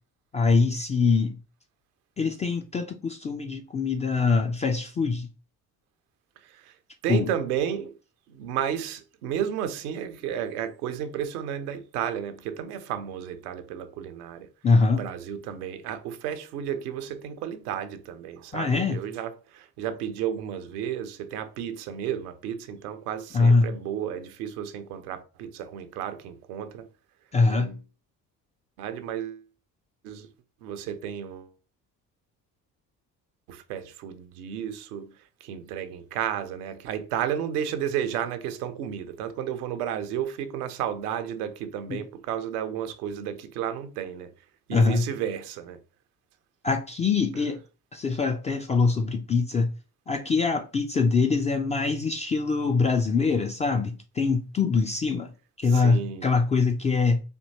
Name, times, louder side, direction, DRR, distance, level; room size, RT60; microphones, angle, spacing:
voice 1, 0.3-1.4 2.2-5.3 7.1-7.3 14.6-15.0 18.5-19.0 23.3-23.7 27.3-27.7 41.9-42.0 44.7-45.1 46.6-47.6 47.9-49.7 50.1-55.3 55.6-57.2, left 4 dB, 15° left, 0.3 m, -23 dB
voice 2, 7.0-7.9 8.4-14.5 14.9-19.3 19.8-26.9 27.5-27.8 28.8-29.4 30.0-30.3 30.6-31.5 33.5-35.1 35.4-44.3 44.7-45.8 55.7-56.2, right 9 dB, 70° right, 0.6 m, -32 dB
4.4 x 2.8 x 2.6 m
figure-of-eight pair, 45°, 47 cm